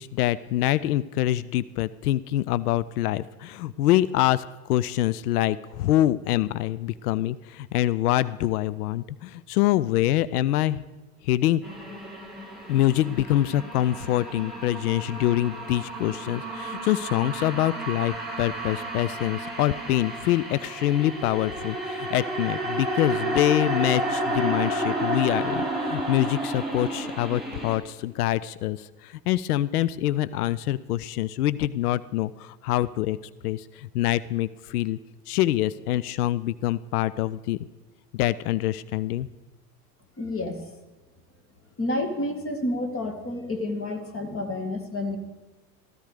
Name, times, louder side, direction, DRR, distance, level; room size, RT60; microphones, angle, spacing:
voice 1, 0.0-10.8 11.2-11.6 12.7-33.2 33.4-35.0 35.3-37.6 38.1-39.3, left 14 dB, 75° left, 18 dB, 0.5 m, -25 dB
sound 1, 11.6-27.8, right 1 dB, ahead, 5.5 m, -31 dB
voice 2, 40.2-40.6 41.8-45.2, left 1 dB, 30° left, 6 dB, 2.0 m, -29 dB
13.5 x 13.0 x 4.9 m, 1.1 s
figure-of-eight pair, 75°, 46 cm